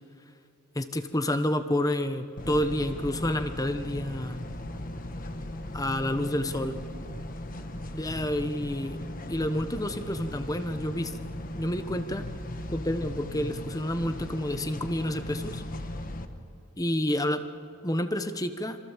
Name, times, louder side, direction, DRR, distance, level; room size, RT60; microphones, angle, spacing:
voice 1, 0.7-4.4 5.7-6.8 7.9-9.0 9.3-11.1 11.5-12.3 12.7-15.6 16.8-17.4 17.8-18.8, left 1 dB, 15° left, 9 dB, 1.1 m, -29 dB
sound 1, 2.4-16.2, left 1 dB, 40° left, 1.5 m, -38 dB
27.0 x 27.0 x 7.4 m, 2.5 s
head